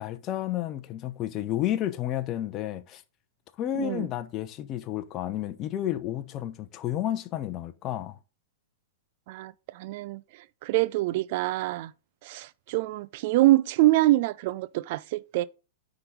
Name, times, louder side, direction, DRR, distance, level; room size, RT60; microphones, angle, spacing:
voice 1, 0.0-3.0 3.6-8.2, left 12 dB, 30° left, 0.8 m, -31 dB
voice 2, 3.8-4.1 9.3-11.9 12.2-15.4, right 17 dB, 50° right, 0.4 m, -25 dB
9.6 x 4.0 x 5.0 m
figure-of-eight pair, 100°, 0 cm